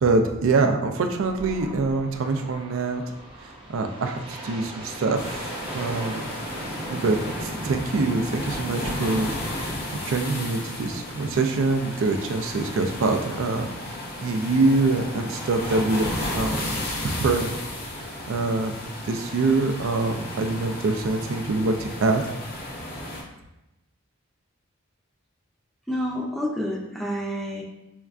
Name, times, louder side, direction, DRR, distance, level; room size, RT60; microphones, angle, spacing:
voice 1, 0.0-3.0 3.4-6.2 6.9-16.8 17.0-17.6 18.0-18.8 19.0-22.2, right 3 dB, 65° right, 5 dB, 0.4 m, -25 dB
sound 1, 1.2-9.8, right 1 dB, 25° right, 0.8 m, -38 dB
sound 2, 5.1-23.2, left 1 dB, 45° left, 0.7 m, -34 dB
voice 2, 25.9-27.6, equal, ahead, -2 dB, 0.4 m, -28 dB
5.2 x 2.4 x 2.3 m, 0.96 s
head